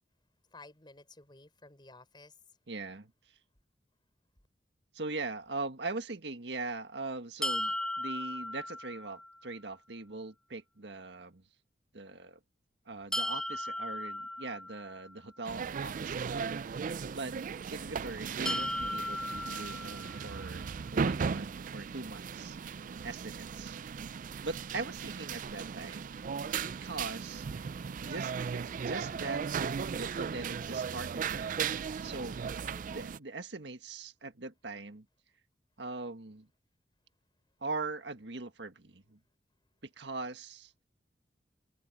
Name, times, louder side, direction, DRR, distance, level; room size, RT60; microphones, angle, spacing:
voice 1, 0.5-2.4 32.7-33.0, left 2 dB, 25° left, 5.9 m, -54 dB
voice 2, 2.7-3.4 4.9-11.4 11.9-12.4 12.9-16.4 16.7-17.4 17.7-22.6 23.0-23.8 24.4-26.2 26.6-27.7 28.0-31.6 32.0-32.4 32.9-35.1 35.8-36.5 37.6-39.2 39.8-40.7, right 3 dB, 85° right, 1.7 m, -41 dB
sound 1, 7.4-9.4 13.1-15.2 18.5-20.5, left 1 dB, 5° left, 0.5 m, -36 dB
sound 2, 15.5-33.2, right 6 dB, 50° right, 0.4 m, -37 dB
head